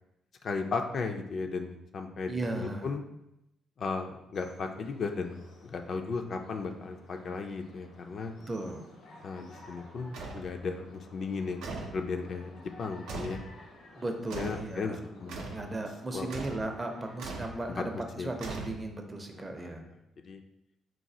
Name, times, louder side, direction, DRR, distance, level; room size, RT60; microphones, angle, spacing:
voice 1, 0.4-3.0 3.8-8.3 9.2-13.4 14.3-15.7 16.1-16.3 17.8-18.3 19.6-19.7 20.2-20.4, left 4 dB, 55° left, 5 dB, 0.3 m, -36 dB
voice 2, 2.3-2.9 8.5-8.9 14.0-19.9, right 2 dB, 25° right, 4 dB, 0.5 m, -36 dB
sound 1, 4.3-18.0, left 1 dB, 85° left, 0.7 m, -54 dB
sound 2, 10.1-10.5 11.6-12.0 13.1-13.5 14.3-14.7 15.3-15.6 16.3-16.7 17.2-17.6 18.4-19.0, right 3 dB, 90° right, 0.5 m, -39 dB
3.9 x 2.3 x 2.7 m, 0.85 s
cardioid pair, 90°, 0 cm